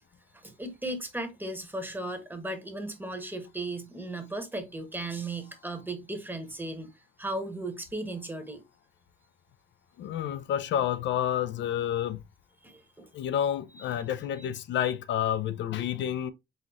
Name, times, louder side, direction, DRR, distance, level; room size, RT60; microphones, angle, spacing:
voice 1, 0.3-6.9 7.2-8.6 12.6-13.1 13.8-14.0 14.4-14.5, right 2 dB, 10° right, 1.0 m, -36 dB
voice 2, 10.0-12.2 13.1-16.3, left 10 dB, 65° left, 0.4 m, -29 dB
4.2 x 3.7 x 2.3 m
cardioid pair, 90°, 20 cm